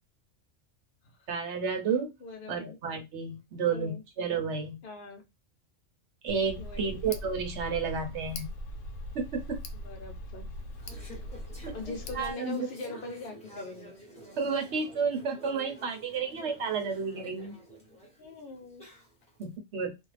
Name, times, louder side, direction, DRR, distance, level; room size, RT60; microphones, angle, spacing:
voice 1, 1.3-2.1 2.5-4.8 6.2-8.5 9.1-9.6 11.7-12.9 14.4-17.6 19.4-19.9, right 5 dB, 65° right, 1.0 m, -31 dB
voice 2, 2.2-2.8 3.6-4.0 4.8-5.3 6.6-7.0 9.7-10.5 11.7-14.0 18.2-18.8, left 3 dB, 50° left, 0.8 m, -42 dB
Tick, 6.3-12.3, left 1 dB, 85° left, 1.0 m, -41 dB
Conversation / Chatter, 10.5-19.4, equal, 5° left, 0.8 m, -50 dB
2.5 x 2.2 x 3.2 m
omnidirectional pair, 1.3 m